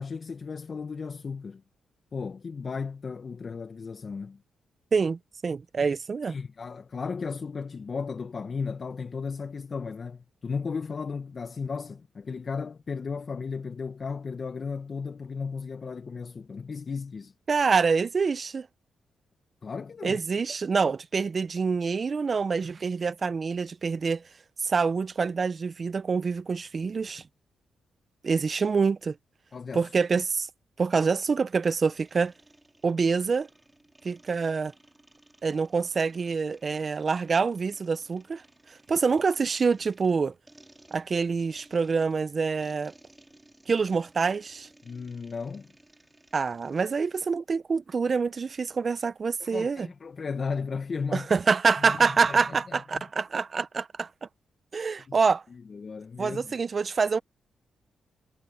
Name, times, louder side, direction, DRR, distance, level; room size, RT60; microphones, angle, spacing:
voice 1, 0.0-1.6 2.1-4.4 6.3-17.3 19.6-20.2 29.5-29.9 44.8-45.7 49.4-51.3 51.8-52.4 52.7-52.8 55.1-55.2 55.5-56.5, left 5 dB, 50° left, 1.6 m, -35 dB
voice 2, 4.9-6.3 17.5-18.7 20.0-24.2 24.6-27.2 28.2-29.2 29.7-30.5 30.8-32.3 32.8-33.5 34.0-34.7 35.4-40.3 40.9-42.9 43.7-44.7 46.3-49.9 51.1-54.3 54.7-55.4 56.2-57.2, right 5 dB, 50° right, 0.9 m, -26 dB
sound 1, 31.9-47.3, right 1 dB, 15° right, 5.5 m, -58 dB
supercardioid pair, 50°, 0 cm